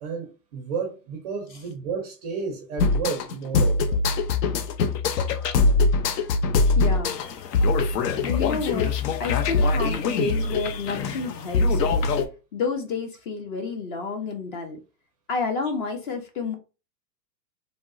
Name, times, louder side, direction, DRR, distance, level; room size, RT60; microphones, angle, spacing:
voice 1, 0.0-4.0, right 5 dB, 25° right, 0.4 m, -32 dB
sound 1, 2.8-12.3, left 3 dB, 70° left, 0.7 m, -23 dB
voice 2, 6.6-7.2 8.3-8.9 9.2-12.1 12.5-14.8 15.3-16.5, left 4 dB, 35° left, 0.4 m, -30 dB
3.4 x 2.0 x 2.5 m
hypercardioid pair, 125°, 50 cm